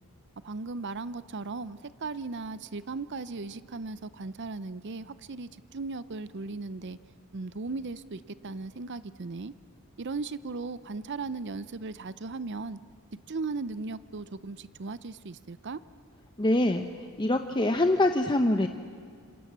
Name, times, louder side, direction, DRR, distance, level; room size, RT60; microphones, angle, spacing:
voice 1, 0.4-7.0 7.3-9.5 10.0-12.8 13.3-15.8, right 3 dB, 50° right, 0.6 m, -37 dB
voice 2, 16.4-16.9 17.2-18.7, left 1 dB, 20° left, 0.8 m, -24 dB
27.0 x 26.5 x 7.4 m
head